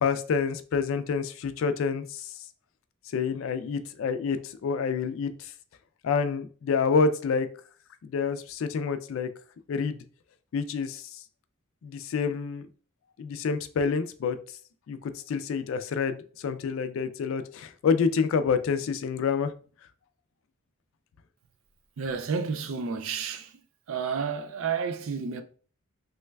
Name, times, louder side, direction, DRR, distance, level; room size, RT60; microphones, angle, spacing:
voice 1, 0.0-2.3 3.1-5.5 6.0-7.5 8.0-9.3 9.7-10.0 10.5-11.2 11.8-12.7 13.2-14.4 14.9-19.5, left 5 dB, 65° left, 0.3 m, -28 dB
voice 2, 22.0-23.6 23.9-25.4, right 5 dB, 65° right, 0.4 m, -31 dB
3.2 x 3.1 x 2.2 m
head